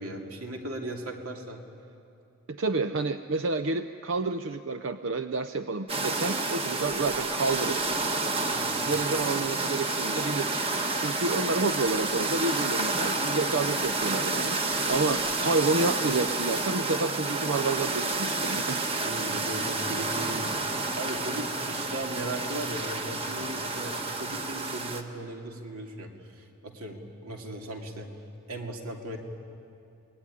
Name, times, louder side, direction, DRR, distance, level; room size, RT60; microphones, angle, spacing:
voice 1, 0.0-1.6 8.5-8.9 19.0-20.5 21.0-28.1 28.5-29.2, right 1 dB, 75° right, 2 dB, 2.7 m, -37 dB
voice 2, 2.5-7.8 8.8-18.8, right 3 dB, 60° right, 9 dB, 0.6 m, -29 dB
sound 1, 5.9-25.0, right 3 dB, 25° right, 1.3 m, -30 dB
26.5 x 20.5 x 10.0 m, 2.6 s
head